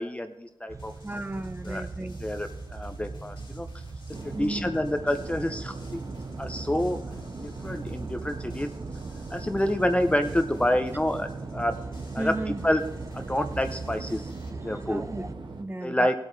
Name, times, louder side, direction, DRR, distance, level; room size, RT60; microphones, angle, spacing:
voice 1, 0.0-0.9 1.6-1.9 2.2-3.7 4.2-6.0 6.4-7.0 7.4-8.7 9.3-11.8 12.1-12.4 12.6-12.8 13.1-15.0 15.8-16.2, left 1 dB, 15° left, 7 dB, 0.7 m, -28 dB
sound 1, 0.7-15.3, right 3 dB, 40° right, 0.5 m, -40 dB
sound 2, 0.8-14.5, left 2 dB, 85° left, 2.8 m, -53 dB
voice 2, 1.0-2.2 4.3-4.7 12.2-12.6 14.7-16.1, right 2 dB, 25° right, 7 dB, 0.9 m, -35 dB
sound 3, 4.1-15.6, right 3 dB, 70° right, 1.1 m, -41 dB
19.0 x 8.3 x 3.4 m, 0.98 s
wide cardioid pair, 105°, 8 cm